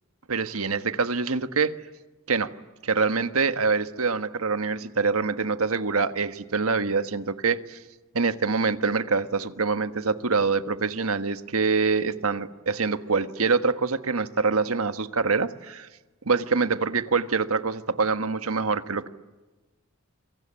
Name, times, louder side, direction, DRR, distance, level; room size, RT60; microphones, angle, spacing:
voice 1, 0.3-1.7 2.3-2.5 2.8-7.8 8.1-15.9 16.2-19.1, right 4 dB, 80° right, 10 dB, 1.4 m, -25 dB
27.5 x 24.0 x 8.9 m, 1.2 s
head